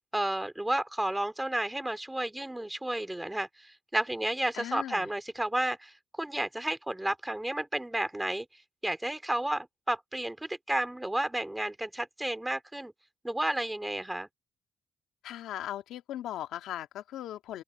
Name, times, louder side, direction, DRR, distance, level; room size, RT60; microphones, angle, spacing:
voice 1, 0.1-8.5 8.8-12.9 13.2-14.3, right 1 dB, 10° right, 3.0 m, -32 dB
voice 2, 4.5-5.1 15.2-17.6, left 12 dB, 85° left, 2.0 m, -38 dB
open air
cardioid pair, 90°, 0 cm